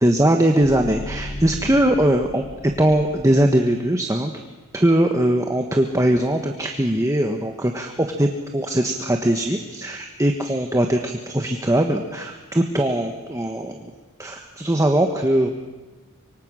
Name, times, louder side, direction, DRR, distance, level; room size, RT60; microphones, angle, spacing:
voice 1, 0.0-2.4 2.8-4.4 4.7-13.9 14.2-15.5, right 1 dB, 15° right, 4 dB, 1.4 m, -20 dB
sound 1, 0.6-3.7, left 1 dB, 35° left, 1.1 m, -36 dB
25.5 x 24.0 x 6.4 m, 1.2 s
head